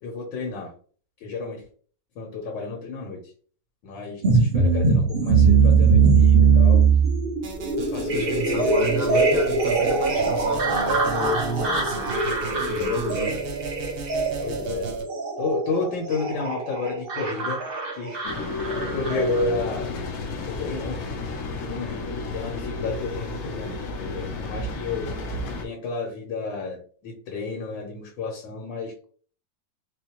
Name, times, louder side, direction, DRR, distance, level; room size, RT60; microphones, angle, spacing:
voice 1, 0.0-0.7 1.2-1.6 2.1-3.2 3.8-6.8 7.9-8.7 14.4-14.9 15.4-17.6 17.9-18.2 18.8-20.0 20.4-21.2 21.5-25.1 25.6-29.0, left 3 dB, 85° left, -1 dB, 1.6 m, -31 dB
sound 1, 4.2-19.4, right 5 dB, 40° right, 0.8 m, -21 dB
sound 2, 7.4-15.0, right 3 dB, 70° right, 1.3 m, -36 dB
voice 2, 8.1-12.2 12.5-13.4, equal, 20° right, -6 dB, 1.3 m, -30 dB
sound 3, 18.2-25.6, left 3 dB, 60° left, 0.9 m, -31 dB
4.5 x 2.3 x 2.9 m, 0.44 s
omnidirectional pair, 1.9 m